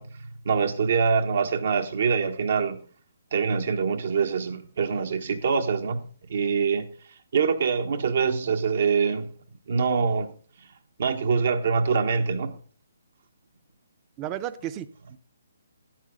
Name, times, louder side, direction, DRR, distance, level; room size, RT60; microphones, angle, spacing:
voice 1, 0.0-2.8 3.3-6.0 6.3-6.9 7.3-9.3 9.7-10.3 11.0-12.5, right 5 dB, 65° right, 1.3 m, -24 dB
voice 2, 14.2-15.2, right 11 dB, 25° right, 0.7 m, -34 dB
12.5 x 8.7 x 3.8 m
hypercardioid pair, 145°, 0 cm